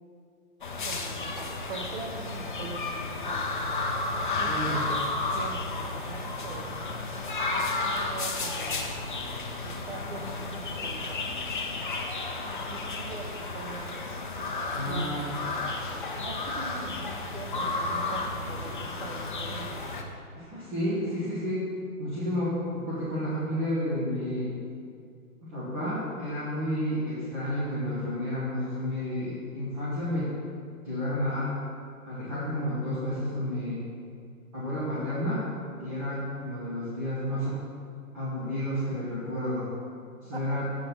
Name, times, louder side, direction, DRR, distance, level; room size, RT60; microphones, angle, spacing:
sound 1, 0.6-20.0, left 3 dB, 35° left, 0.6 m, -32 dB
voice 1, 0.8-3.5 4.4-5.0 5.3-6.8 7.5-8.9 9.6-11.4 12.4-14.0 14.8-15.2 16.2-19.8 40.3-40.6, right 4 dB, 40° right, 3 dB, 0.7 m, -42 dB
voice 2, 4.5-4.8 14.7-15.3 20.3-21.7 22.0-24.5 25.4-30.3 30.8-31.5 32.1-33.8 34.5-35.4 35.8-37.6 38.1-39.7 40.3-40.7, left 1 dB, 15° right, -11 dB, 1.0 m, -31 dB
7.4 x 4.1 x 6.6 m, 2.3 s
hypercardioid pair, 165°, 44 cm